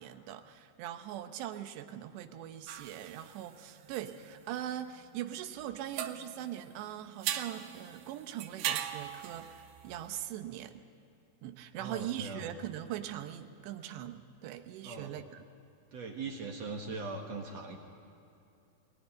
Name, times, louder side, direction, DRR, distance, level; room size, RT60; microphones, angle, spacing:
voice 1, 0.0-10.8 11.4-15.4, right 11 dB, 90° right, 8 dB, 3.2 m, -41 dB
sound 1, 2.7-5.6 5.9-10.3, right 10 dB, 70° right, 2.2 m, -40 dB
voice 2, 11.7-12.5 14.8-15.1 15.9-17.8, right 3 dB, 55° right, 1 dB, 2.2 m, -40 dB
21.0 x 21.0 x 9.8 m, 2.7 s
omnidirectional pair, 4.8 m